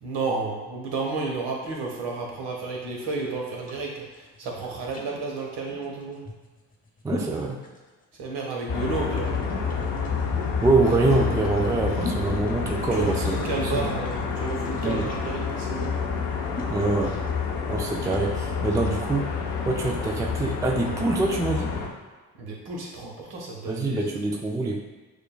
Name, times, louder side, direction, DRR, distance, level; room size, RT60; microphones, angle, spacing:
voice 1, 0.0-6.2 8.2-9.4 12.9-16.0 22.4-24.2, right 3 dB, 60° right, -1 dB, 1.1 m, -32 dB
sound 1, 3.5-18.3, left 3 dB, 20° left, 0.9 m, -41 dB
voice 2, 7.0-7.6 10.6-13.9 14.8-15.1 16.7-17.2 17.7-19.3 19.7-21.8 23.7-24.8, right 3 dB, 10° right, 1 dB, 0.3 m, -25 dB
sound 2, 8.7-21.9, left 5 dB, 55° left, 0.8 m, -29 dB
6.4 x 2.3 x 2.2 m, 1.3 s
hypercardioid pair, 45°, 46 cm